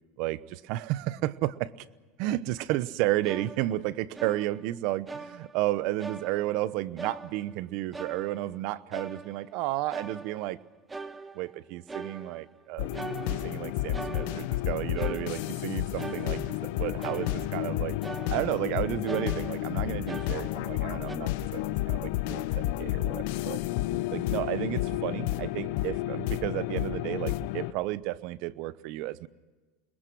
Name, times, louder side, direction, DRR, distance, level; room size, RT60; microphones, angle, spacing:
voice 1, 0.2-1.7 2.2-10.6 11.3-12.9 13.3-16.4 16.8-17.9 18.3-23.6 24.1-29.3, right 16 dB, 60° right, 17 dB, 0.9 m, -32 dB
sound 1, 3.2-4.7 5.1-5.7 6.0-6.7 7.0-7.6 7.9-9.6 9.9-10.6 10.9-11.6 11.9-12.6 12.9-14.7 15.0-15.7 16.0-16.7 17.0-17.7 18.0-18.7 19.1-20.8 21.1-21.2, right 3 dB, 15° right, 1.5 m, -42 dB
sound 2, 12.8-27.7, left 15 dB, 70° left, 1.0 m, -31 dB
28.0 x 21.5 x 6.2 m, 1.3 s
supercardioid pair, 115°, 0 cm